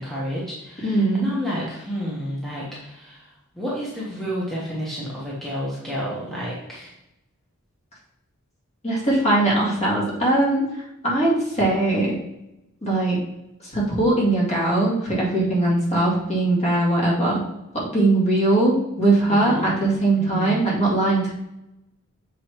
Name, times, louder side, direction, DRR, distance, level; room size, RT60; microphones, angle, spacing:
voice 1, 0.0-6.9 19.3-19.7 20.2-20.6, equal, ahead, -7 dB, 1.1 m, -31 dB
voice 2, 0.8-1.3 8.8-10.6 11.0-12.2 12.8-13.2 13.6-17.4 17.7-21.3, right 2 dB, 30° left, -5 dB, 2.0 m, -20 dB
7.1 x 4.7 x 3.0 m, 0.89 s
head